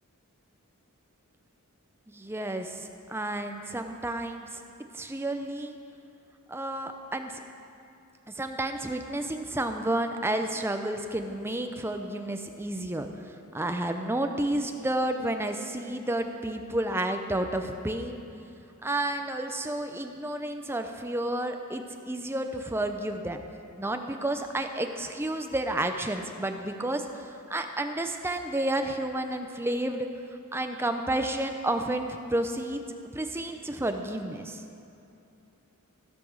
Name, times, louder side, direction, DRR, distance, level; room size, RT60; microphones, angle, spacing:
voice 1, 2.1-4.6 4.9-5.8 6.5-7.3 8.4-18.2 18.8-23.4 23.8-30.1 30.5-32.8 33.1-34.6, right 1 dB, 10° right, 5 dB, 0.6 m, -31 dB
15.5 x 5.9 x 6.4 m, 2.7 s
head